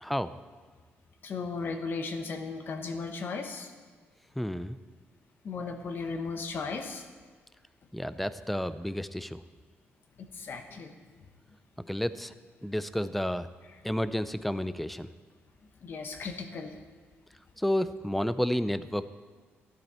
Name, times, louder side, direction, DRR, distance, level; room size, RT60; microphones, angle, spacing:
voice 1, 0.0-0.3 4.4-4.8 7.9-9.4 11.9-12.3 12.6-13.5 13.8-15.1 17.6-19.1, equal, ahead, 13 dB, 0.4 m, -31 dB
voice 2, 1.2-3.7 5.4-7.0 10.2-10.9 15.8-16.8, left 4 dB, 55° left, 6 dB, 1.2 m, -36 dB
13.5 x 12.0 x 4.3 m, 1.5 s
cardioid pair, 125°, 4 cm